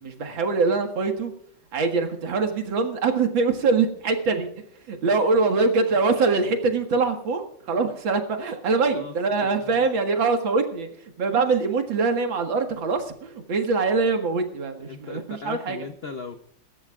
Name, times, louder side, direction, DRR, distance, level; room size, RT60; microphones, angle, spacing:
voice 1, 0.0-1.3 1.7-4.5 4.9-10.9 11.2-15.8, right 4 dB, 70° right, 4 dB, 2.5 m, -23 dB
voice 2, 8.9-9.5 9.8-10.0 14.8-16.4, left 5 dB, 80° left, 7 dB, 0.5 m, -38 dB
25.0 x 13.5 x 2.4 m, 0.66 s
omnidirectional pair, 2.2 m